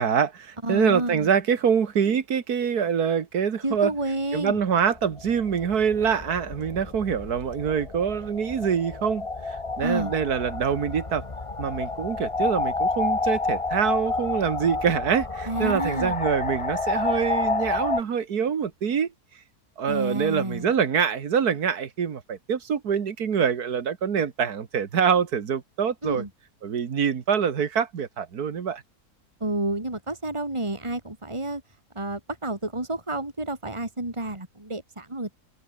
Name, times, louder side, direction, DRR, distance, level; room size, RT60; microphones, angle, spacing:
voice 1, 0.0-3.9 4.3-11.2 11.6-19.1 19.8-26.2 26.6-28.8, right 7 dB, 75° right, 2.0 m, -25 dB
voice 2, 0.6-1.3 3.6-4.6 9.8-10.1 15.5-16.2 19.9-20.7 26.0-26.3 29.4-31.6 32.0-35.4, right 2 dB, 20° right, 3.5 m, -30 dB
sound 1, 4.8-18.0, left 3 dB, 20° left, 1.3 m, -29 dB
open air
omnidirectional pair, 1.7 m